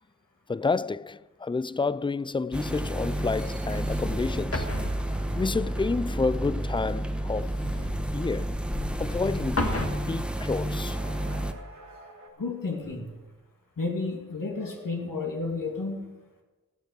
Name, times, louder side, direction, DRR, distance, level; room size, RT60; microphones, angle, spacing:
voice 1, 0.5-4.7 5.3-7.7 8.1-8.6 9.0-11.0, left 4 dB, 15° left, 0.3 m, -30 dB
sound 1, 2.5-11.5, right 1 dB, 5° right, 1.0 m, -31 dB
sound 2, 4.5-9.9, left 1 dB, 45° left, 1.8 m, -35 dB
sound 3, 10.6-12.3, right 1 dB, 60° right, 2.4 m, -48 dB
voice 2, 12.4-13.1 13.8-16.1, left 3 dB, 80° left, 2.5 m, -32 dB
14.5 x 7.9 x 6.7 m
cardioid pair, 40°, 33 cm